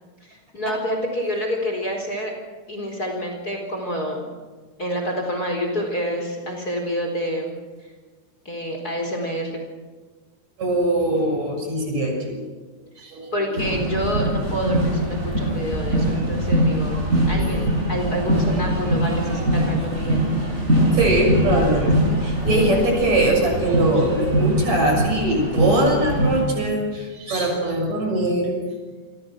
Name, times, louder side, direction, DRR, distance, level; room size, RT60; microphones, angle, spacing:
voice 1, 0.2-2.3 2.7-4.3 4.8-7.5 8.4-9.6 13.3-20.2, equal, 25° left, 2 dB, 4.5 m, -28 dB
voice 2, 10.6-12.4 13.0-13.6 16.1-16.2 17.5-17.7 18.3-18.4 20.9-28.6, right 1 dB, 55° right, 2 dB, 7.9 m, -22 dB
sound 1, 13.6-26.4, right 1 dB, 20° right, 7.0 m, -22 dB
29.5 x 24.0 x 6.3 m, 1.4 s
omnidirectional pair, 3.8 m